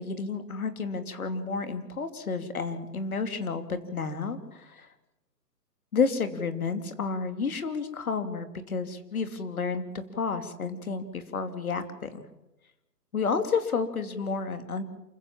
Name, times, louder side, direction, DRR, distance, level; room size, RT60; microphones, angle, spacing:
voice 1, 0.0-4.9 5.9-12.3 13.1-14.8, left 5 dB, 60° left, 9 dB, 3.0 m, -31 dB
28.0 x 15.5 x 7.4 m, 0.93 s
hypercardioid pair, 160°, 49 cm